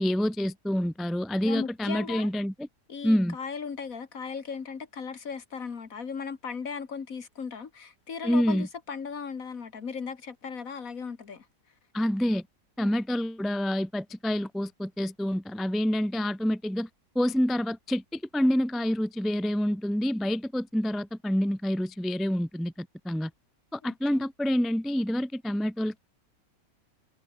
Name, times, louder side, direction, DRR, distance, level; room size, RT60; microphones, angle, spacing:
voice 1, 0.0-2.7 3.0-3.4 8.2-8.7 11.9-12.4 12.8-16.9 17.1-23.3 23.7-26.0, equal, ahead, 0.4 m, -27 dB
voice 2, 1.4-2.3 2.9-11.5 12.8-12.9 24.1-24.3, left 6 dB, 55° left, 2.1 m, -37 dB
omnidirectional pair, 1.8 m